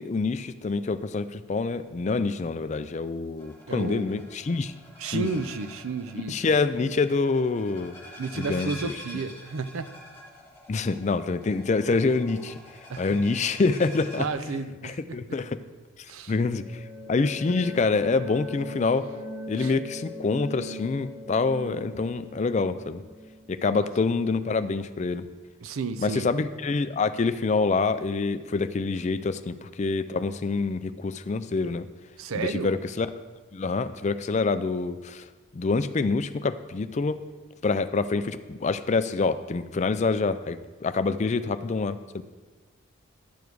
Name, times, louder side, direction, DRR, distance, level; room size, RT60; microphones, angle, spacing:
voice 1, 0.0-4.7 5.1-5.3 6.3-8.0 8.4-8.7 10.7-12.6 13.0-15.6 16.3-16.8 17.1-19.1 19.5-23.0 23.5-25.3 26.0-31.9 32.3-33.1 33.5-35.3 35.5-37.2 37.6-42.2, left 4 dB, 35° left, 12 dB, 0.3 m, -26 dB
sound 1, 3.4-14.3, left 1 dB, 15° left, 3.1 m, -46 dB
voice 2, 3.7-4.2 5.0-6.4 8.2-9.9 12.9-13.2 14.2-15.2 16.1-16.3 19.6-19.7 23.7-23.9 25.6-26.3 32.2-32.7, right 4 dB, 80° right, 11 dB, 0.5 m, -32 dB
sound 2, 16.3-24.9, left 1 dB, 15° right, 2.1 m, -40 dB
11.0 x 7.1 x 4.7 m, 1.3 s
head